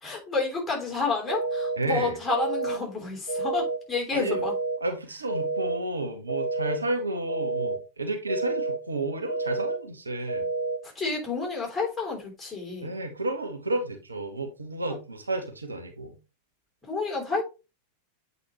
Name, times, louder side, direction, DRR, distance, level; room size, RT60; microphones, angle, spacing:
voice 1, 0.0-4.5 11.0-12.9 16.9-17.4, left 4 dB, 10° left, 3.4 m, -30 dB
sound 1, 1.3-1.8 2.3-2.8 3.3-3.8 4.3-4.8 5.3-5.8 6.3-6.8 7.3-7.8 8.3-8.8 9.3-9.8 10.3-10.8, right 3 dB, 60° right, 2.8 m, -29 dB
voice 2, 1.8-2.2 4.1-4.4 4.8-10.5 12.8-16.2, right 2 dB, 80° right, 1.4 m, -31 dB
8.4 x 5.0 x 3.1 m
figure-of-eight pair, 90°, 0 cm